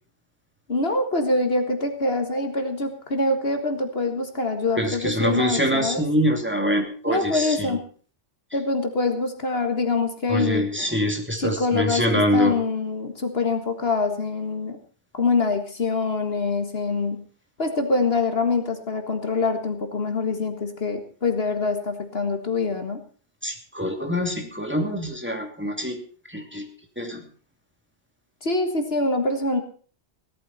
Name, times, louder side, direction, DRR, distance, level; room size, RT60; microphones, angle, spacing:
voice 1, 0.7-6.0 7.1-7.8 8.5-10.7 11.4-14.8 15.1-17.2 17.6-23.0 28.4-29.6, left 3 dB, 60° left, 5 dB, 2.0 m, -25 dB
voice 2, 4.8-7.8 10.3-12.6 23.4-26.0 26.3-26.7 27.0-27.2, equal, 10° right, 3 dB, 2.8 m, -24 dB
17.5 x 13.0 x 4.3 m, 0.42 s
omnidirectional pair, 1.2 m